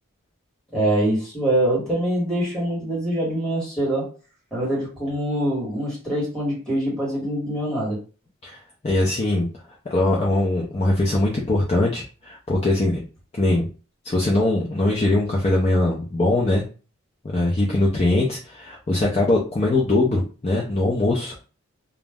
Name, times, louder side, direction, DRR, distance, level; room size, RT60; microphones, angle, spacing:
voice 1, 0.7-4.1 4.5-8.0, right 1 dB, 5° left, -7 dB, 1.2 m, -24 dB
voice 2, 8.4-9.5 9.9-13.0 13.4-13.7 14.0-16.6 17.2-21.3, left 2 dB, 25° left, -3 dB, 0.4 m, -21 dB
2.4 x 2.0 x 3.4 m, 0.35 s
head